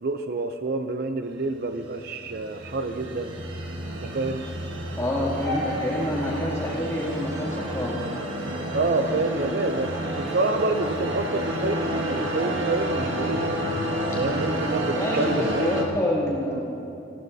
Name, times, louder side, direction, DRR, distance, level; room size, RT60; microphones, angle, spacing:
voice 1, 0.0-3.4 3.9-4.4 8.7-13.5 14.2-15.7 16.5-16.6, right 3 dB, 50° right, 8 dB, 0.5 m, -28 dB
sound 1, 1.7-15.8, equal, 90° right, 1.3 m, -30 dB
voice 2, 5.0-8.0 14.9-16.6, left 1 dB, 15° left, -6 dB, 2.4 m, -27 dB
sound 2, 5.4-6.7 7.5-8.7 9.5-10.0 10.3-10.9 11.6-12.9 13.6-14.1, left 1 dB, 70° right, 2.9 m, -38 dB
20.0 x 15.0 x 2.7 m, 2.8 s
head